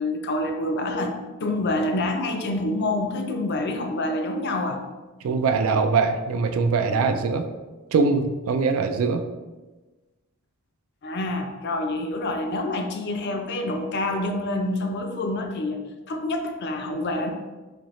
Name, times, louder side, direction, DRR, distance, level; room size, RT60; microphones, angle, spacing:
voice 1, 0.0-4.8 11.0-15.8 16.1-17.3, left 2 dB, 50° left, 5 dB, 0.4 m, -27 dB
voice 2, 5.2-7.5 7.9-9.2, right 4 dB, 70° right, 8 dB, 0.3 m, -22 dB
4.2 x 2.7 x 3.1 m, 1.2 s
head